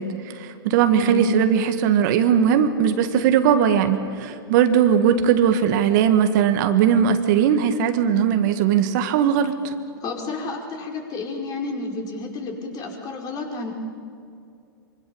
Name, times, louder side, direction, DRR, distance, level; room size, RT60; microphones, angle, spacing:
voice 1, 0.0-9.7, right 8 dB, 55° right, 8 dB, 1.8 m, -19 dB
voice 2, 1.0-1.4 10.0-13.7, left 3 dB, 30° left, 1 dB, 5.0 m, -31 dB
25.0 x 25.0 x 7.0 m, 2.4 s
hypercardioid pair, 115°, 12 cm